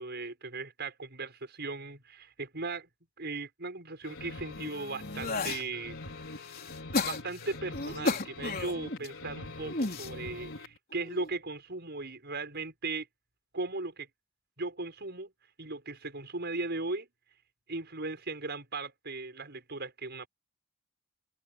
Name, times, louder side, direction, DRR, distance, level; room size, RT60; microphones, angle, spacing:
voice 1, 0.0-2.9 3.2-6.0 7.0-13.1 13.5-14.1 14.6-15.3 15.6-17.1 17.7-20.3, right 3 dB, 55° right, 6.6 m, -37 dB
sound 1, 4.0-10.8, left 2 dB, 65° left, 4.9 m, -44 dB
sound 2, 4.6-5.6 6.2-9.1 9.6-10.1 10.9-11.3, left 3 dB, 45° left, 3.7 m, -34 dB
open air
head